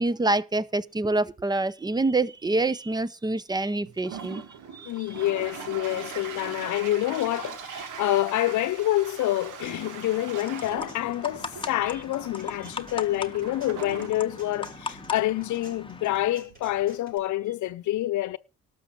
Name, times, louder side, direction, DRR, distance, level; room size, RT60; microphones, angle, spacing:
voice 1, 0.0-4.4 4.7-4.9, right 2 dB, 15° right, 0.7 m, -26 dB
Toilet flush, 3.8-17.0, right 6 dB, 85° right, 1.7 m, -42 dB
voice 2, 4.9-18.4, left 14 dB, 75° left, 0.7 m, -27 dB
sound 1, 9.4-17.2, right 1 dB, 30° right, 6.1 m, -53 dB
sound 2, 9.8-16.3, left 4 dB, 15° left, 1.0 m, -39 dB
12.0 x 6.3 x 8.3 m
cardioid pair, 90°, 30 cm